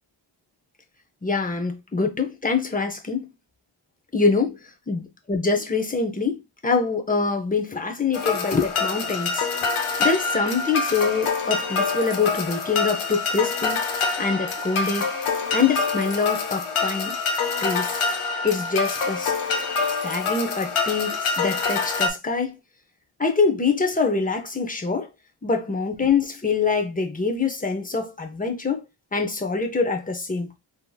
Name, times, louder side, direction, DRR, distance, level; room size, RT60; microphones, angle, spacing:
voice 1, 1.2-3.3 4.1-4.6 4.9-9.5 10.0-13.8 14.2-15.1 15.5-17.2 17.6-18.0 18.4-19.3 20.0-22.6 23.2-25.1 25.4-28.8 29.1-30.6, left 4 dB, 15° left, 0.6 m, -24 dB
sound 1, 8.1-22.1, left 4 dB, 80° left, 0.7 m, -26 dB
3.5 x 2.7 x 2.2 m
wide cardioid pair, 90°, 49 cm